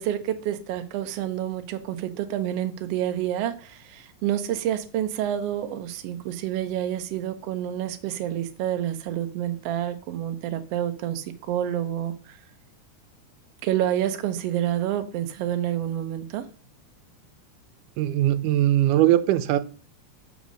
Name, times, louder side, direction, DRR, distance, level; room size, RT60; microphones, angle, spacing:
voice 1, 0.0-12.4 13.6-16.5, right 11 dB, 70° right, 8 dB, 1.5 m, -28 dB
voice 2, 18.0-19.6, right 13 dB, 90° right, 13 dB, 2.2 m, -20 dB
7.0 x 5.2 x 6.2 m, 0.40 s
omnidirectional pair, 3.6 m